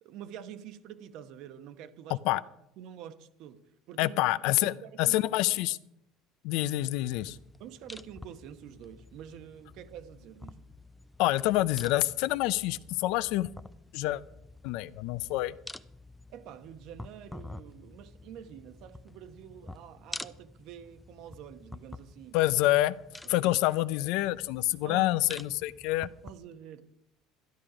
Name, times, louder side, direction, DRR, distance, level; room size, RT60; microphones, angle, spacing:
voice 1, 0.0-2.3 2.8-3.6 3.9-4.2 4.6-5.2 7.6-10.7 16.3-22.4 23.2-23.6 24.8-25.1 26.2-26.9, right 9 dB, 60° right, 1.0 m, -47 dB
voice 2, 2.1-2.4 4.0-4.7 5.0-5.8 6.4-7.4 11.2-13.5 13.9-14.2 14.6-15.5 22.3-22.9 23.3-26.1, left 16 dB, 70° left, 0.5 m, -27 dB
sound 1, 6.8-26.4, left 2 dB, 5° left, 0.4 m, -49 dB
12.5 x 12.0 x 4.9 m
cardioid pair, 150°, 0 cm